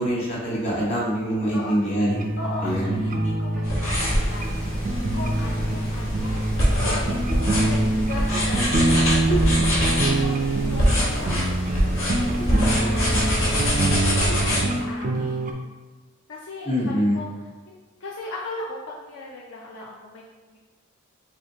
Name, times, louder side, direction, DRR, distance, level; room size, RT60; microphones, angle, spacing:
voice 1, 0.0-2.2 2.6-3.0 16.6-17.2, equal, 30° left, -6 dB, 1.1 m, -24 dB
voice 2, 1.5-7.1 7.6-7.8 8.1-12.0 12.4-13.5 13.9-15.5 16.3-20.6, left 2 dB, 60° left, -3 dB, 0.4 m, -39 dB
sound 1, 2.1-15.5, right 2 dB, 40° right, 0.3 m, -25 dB
sound 2, 3.6-14.6, equal, 80° left, 1.3 m, -25 dB
sound 3, 3.9-13.9, equal, 5° left, 0.6 m, -32 dB
4.3 x 3.2 x 2.8 m, 1.3 s
head